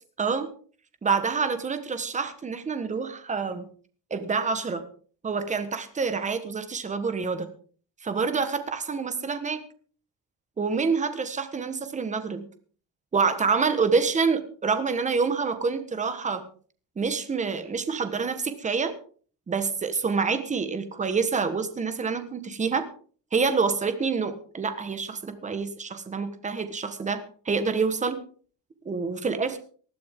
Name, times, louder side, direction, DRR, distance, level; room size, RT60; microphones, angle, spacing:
voice 1, 0.2-0.5 1.0-3.7 4.1-4.8 5.2-7.5 8.0-9.6 10.6-12.5 13.1-16.4 17.0-18.9 19.5-22.9 23.3-28.2 28.8-29.6, right 5 dB, 15° right, 9 dB, 1.4 m, -27 dB
19.5 x 12.5 x 3.7 m, 0.43 s
cardioid pair, 175°, 42 cm